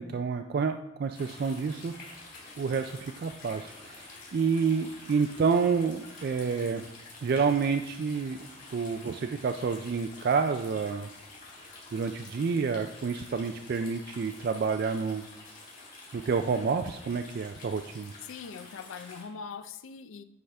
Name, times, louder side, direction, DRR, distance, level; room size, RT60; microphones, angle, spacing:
voice 1, 0.0-1.9 2.6-6.9 7.2-8.4 8.7-11.1 11.9-15.2 16.1-18.1, right 5 dB, 50° right, 0.3 m, -29 dB
sound 1, 1.1-19.2, left 3 dB, 40° left, 2.4 m, -49 dB
voice 2, 18.2-20.2, left 6 dB, 75° left, 0.4 m, -42 dB
9.6 x 4.8 x 3.4 m
head